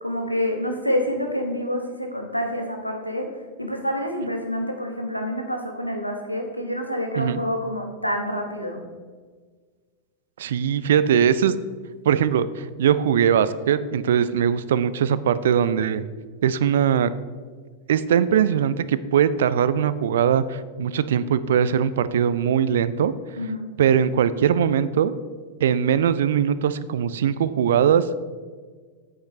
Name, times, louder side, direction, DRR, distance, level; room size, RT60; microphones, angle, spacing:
voice 1, 0.0-3.3 3.6-8.8 23.4-23.7, equal, 90° left, 3 dB, 1.0 m, -27 dB
voice 2, 10.4-11.5 12.1-16.0 16.4-17.1 17.9-23.1 23.8-25.1 25.6-28.2, right 8 dB, 60° right, 15 dB, 0.3 m, -21 dB
8.1 x 8.0 x 3.2 m, 1.5 s
figure-of-eight pair, 90°, 0 cm